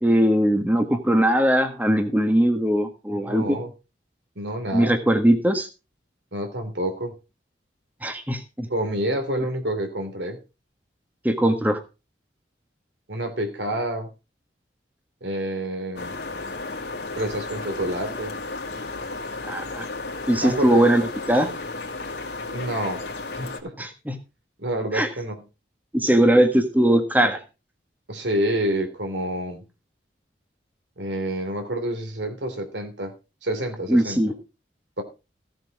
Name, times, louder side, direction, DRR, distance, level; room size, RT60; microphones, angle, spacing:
voice 1, 0.0-3.6 4.7-5.7 8.0-8.7 11.2-11.8 19.4-19.9 20.3-21.5 23.8-24.1 24.9-25.1 25.9-27.4 33.9-34.3, right 1 dB, 10° right, 6 dB, 1.5 m, -20 dB
voice 2, 3.1-3.7 4.3-5.0 6.3-7.1 8.7-10.4 13.1-14.1 15.2-16.1 17.2-18.3 20.4-20.9 22.5-23.0 23.3-23.7 24.6-25.4 28.1-29.6 31.0-33.1 33.4-34.2 35.0-35.1, right 1 dB, 75° right, 7 dB, 3.1 m, -28 dB
sound 1, 16.0-23.6, left 3 dB, 65° left, 2.4 m, -33 dB
15.5 x 7.7 x 4.8 m, 0.30 s
head